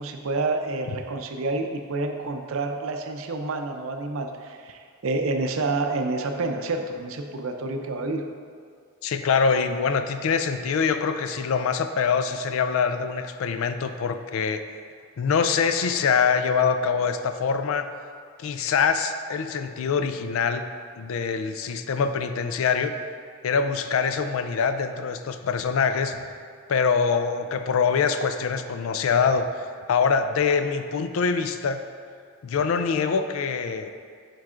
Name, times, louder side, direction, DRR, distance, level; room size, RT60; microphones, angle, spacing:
voice 1, 0.0-8.3, right 3 dB, 75° right, 5 dB, 0.5 m, -28 dB
voice 2, 9.0-14.6 15.2-17.9 18.4-20.6 21.0-22.9 23.4-26.4 26.7-31.8 32.4-33.9, left 5 dB, 75° left, 9 dB, 0.3 m, -24 dB
9.1 x 4.6 x 2.5 m, 2.1 s
head